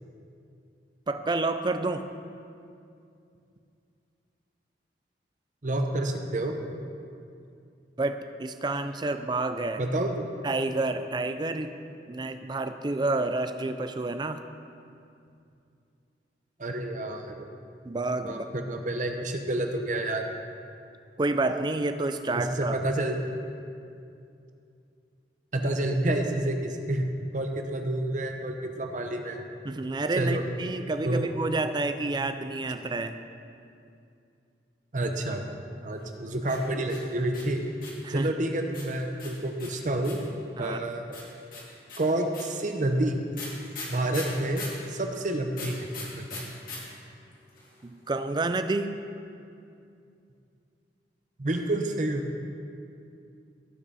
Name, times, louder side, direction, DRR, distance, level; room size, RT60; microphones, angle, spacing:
voice 1, 1.1-2.1 8.0-9.8 10.4-11.8 12.1-14.4 17.8-18.5 21.2-22.8 29.6-33.2 38.0-38.3 40.6-40.8 47.8-49.0, right 2 dB, 25° right, 9 dB, 0.4 m, -29 dB
voice 2, 5.6-6.6 9.8-10.3 16.6-17.5 18.2-20.3 22.3-23.2 25.5-27.0 27.3-29.5 30.2-30.4 31.0-31.4 34.9-35.4 35.8-37.6 38.1-40.2 40.6-41.2 42.0-43.2 43.9-45.9 46.1-46.4 51.4-52.4, right 1 dB, 45° right, 4 dB, 0.8 m, -29 dB
sound 1, 36.4-38.1 38.7-40.3 41.1-44.8 45.5-46.8 47.0-47.1 47.3-47.8, left 4 dB, 50° left, 2.5 m, -40 dB
17.5 x 5.9 x 4.1 m, 2.5 s
head